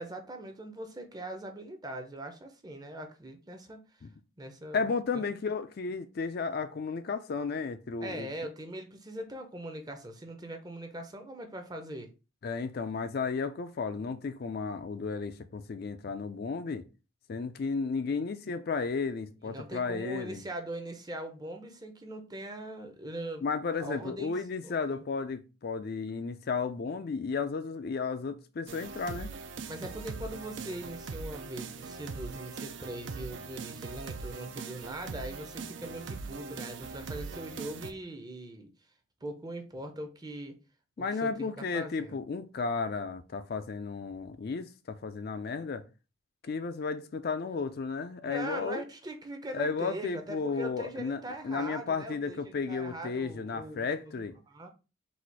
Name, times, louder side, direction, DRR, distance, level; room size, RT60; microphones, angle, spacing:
voice 1, 0.0-4.1 4.4-5.2 8.0-12.1 19.4-23.5 23.8-25.0 29.7-38.7 39.2-40.6 41.0-42.2 48.3-54.2 54.5-54.7, right 1 dB, 20° right, 0.6 m, -41 dB
voice 2, 4.7-8.3 12.4-16.8 17.3-20.4 23.4-29.3 41.0-45.8 46.4-48.8 49.5-54.4, left 4 dB, 50° left, 0.4 m, -33 dB
sound 1, 28.7-37.9, right 4 dB, 60° right, 0.4 m, -41 dB
4.2 x 2.4 x 4.5 m
head